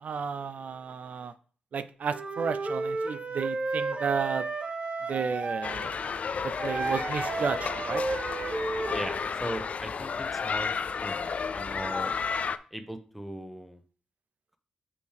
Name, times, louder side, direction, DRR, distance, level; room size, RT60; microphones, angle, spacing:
voice 1, 0.0-1.3 1.7-4.4 5.1-6.0 6.6-8.0, right 6 dB, 70° right, 12 dB, 0.4 m, -32 dB
Wind instrument woodwind instrument, 2.1-5.7 6.6-9.2, right 3 dB, 45° right, 1.0 m, -32 dB
sound 1, 5.6-12.6, left 5 dB, 55° left, 0.4 m, -32 dB
voice 2, 8.9-10.7 11.0-12.1 12.7-13.8, equal, ahead, 7 dB, 0.9 m, -38 dB
6.2 x 5.6 x 3.4 m, 0.42 s
cardioid pair, 85°, 3 cm